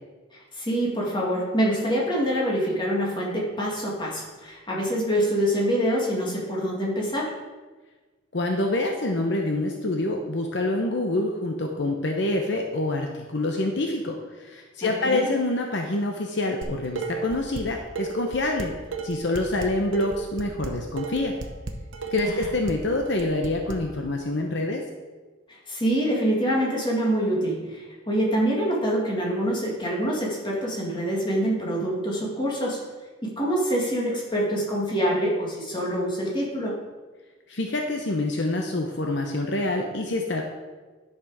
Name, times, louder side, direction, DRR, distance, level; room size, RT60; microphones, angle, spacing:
voice 1, 0.5-7.3 14.8-15.4 22.2-22.5 25.7-32.9 33.2-36.8, equal, 25° left, -3 dB, 2.0 m, -25 dB
voice 2, 8.3-18.7 19.0-21.3 22.1-24.8 37.5-40.4, left 2 dB, 60° left, 2 dB, 0.8 m, -26 dB
Dishes pots and pans, 16.6-17.6 18.0-23.8, right 4 dB, 80° right, 0.9 m, -34 dB
10.5 x 6.0 x 4.8 m, 1.3 s
head